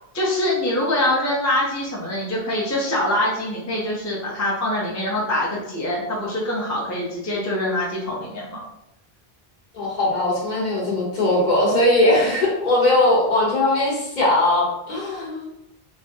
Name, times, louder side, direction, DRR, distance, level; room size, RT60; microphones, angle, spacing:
voice 1, 0.1-8.6, left 1 dB, 20° left, -4 dB, 0.5 m, -24 dB
voice 2, 9.7-15.5, left 1 dB, 50° left, -5 dB, 1.0 m, -20 dB
3.2 x 2.2 x 2.7 m, 0.83 s
omnidirectional pair, 1.0 m